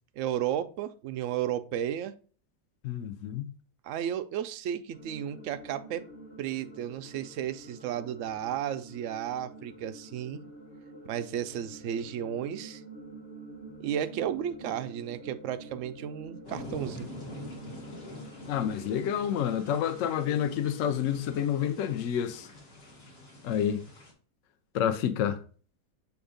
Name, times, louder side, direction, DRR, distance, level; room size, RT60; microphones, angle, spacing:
voice 1, 0.2-2.1 3.8-6.0 6.4-10.4 11.0-12.8 13.8-17.1, right 10 dB, 75° right, 0.6 m, -33 dB
voice 2, 2.8-3.5 18.5-22.5 23.4-23.8 24.7-25.4, left 9 dB, 65° left, 0.9 m, -29 dB
sound 1, 4.9-21.4, right 2 dB, 40° left, 1.1 m, -48 dB
sound 2, 16.4-24.1, left 2 dB, 80° left, 2.6 m, -46 dB
7.1 x 2.6 x 5.0 m
omnidirectional pair, 1.8 m